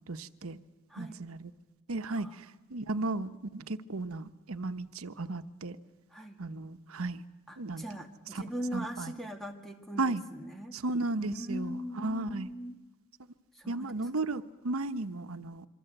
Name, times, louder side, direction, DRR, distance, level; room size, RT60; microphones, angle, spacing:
voice 1, 0.1-0.6 1.0-1.5 1.9-5.8 6.4-7.2 7.6-8.0 8.3-8.4 8.7-9.1 10.0-10.2 10.7-12.5 13.7-15.7, right 2 dB, 85° right, 10 dB, 1.0 m, -35 dB
voice 2, 0.9-1.2 2.1-2.3 6.1-6.4 7.5-10.8 11.2-12.8 13.5-13.9, equal, ahead, 4 dB, 2.1 m, -40 dB
26.5 x 24.0 x 8.0 m, 1.1 s
head